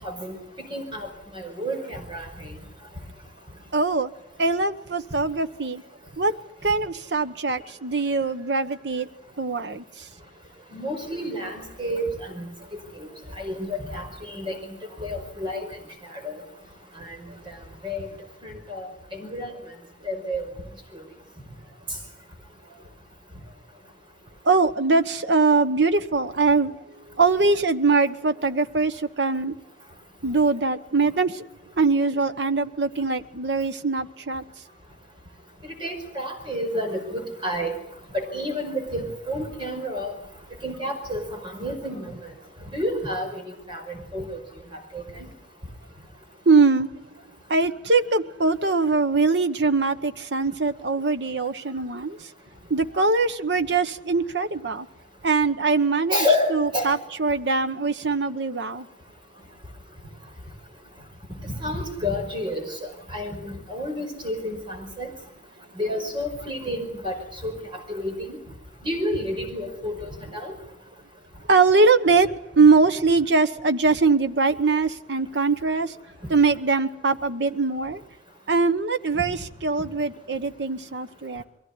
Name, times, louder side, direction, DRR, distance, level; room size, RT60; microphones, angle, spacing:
voice 1, 0.0-2.6 10.7-13.1 13.4-14.6 15.0-15.7 16.0-16.4 17.0-17.2 17.5-17.6 17.8-18.1 18.4-19.5 20.0-20.5 20.9-21.0 35.6-37.8 38.1-40.1 40.6-42.2 42.7-44.4 44.9-45.3 56.1-56.9 61.4-62.8 63.1-65.1 65.8-67.2 67.4-68.4 68.8-70.6, left 1 dB, 30° right, 5.2 m, -30 dB
voice 2, 3.7-4.1 4.4-5.8 6.2-6.3 6.6-9.1 9.4-10.1 12.6-12.7 17.3-17.4 24.4-29.5 30.2-31.5 31.8-34.4 46.5-46.9 47.5-52.3 52.7-54.9 55.2-56.2 56.5-58.9 71.5-75.9 76.3-78.0 78.5-81.4, right 4 dB, 80° right, 1.1 m, -22 dB
23.0 x 17.0 x 9.7 m
head